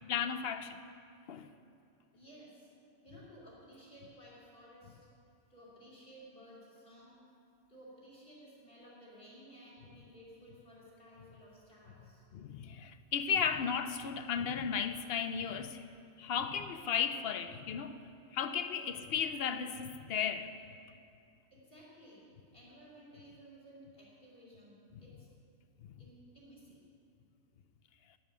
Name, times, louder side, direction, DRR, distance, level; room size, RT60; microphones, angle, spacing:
voice 1, 0.1-0.8 1.3-1.5 12.3-15.8 16.2-18.0 18.3-20.5, left 7 dB, 60° left, 0.7 m, -34 dB
voice 2, 2.1-2.7 3.0-5.1 5.5-7.2 7.7-12.2 18.8-18.9 21.5-22.2 22.5-25.3 26.0-26.8, equal, 40° left, 3.3 m, -56 dB
12.5 x 7.3 x 9.7 m
omnidirectional pair, 1.4 m